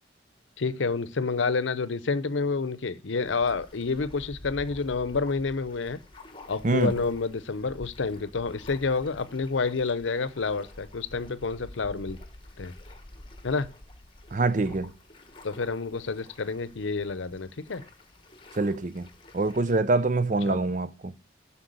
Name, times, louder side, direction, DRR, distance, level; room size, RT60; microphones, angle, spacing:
voice 1, 0.6-6.0 6.5-12.2 12.6-12.7 13.4-13.7 15.4-17.8 20.5-20.6, left 4 dB, 80° left, 0.7 m, -29 dB
sound 1, 3.2-19.8, left 1 dB, 25° left, 1.1 m, -49 dB
voice 2, 6.6-7.0 14.3-14.9 18.5-19.1 19.3-21.1, right 3 dB, 40° right, 0.6 m, -25 dB
7.9 x 5.9 x 7.6 m
head